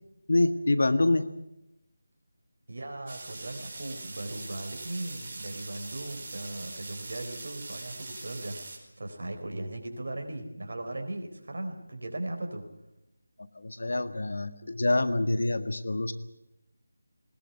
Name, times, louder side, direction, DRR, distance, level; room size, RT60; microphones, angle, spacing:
voice 1, 0.3-1.3 13.5-16.1, left 2 dB, 65° left, 11 dB, 1.6 m, -26 dB
voice 2, 2.7-12.7, right 1 dB, 60° right, 5 dB, 4.0 m, -38 dB
sound 1, 3.1-8.8, right 2 dB, 40° right, 4.7 m, -42 dB
20.0 x 17.5 x 9.6 m, 0.93 s
figure-of-eight pair, 165°, 0 cm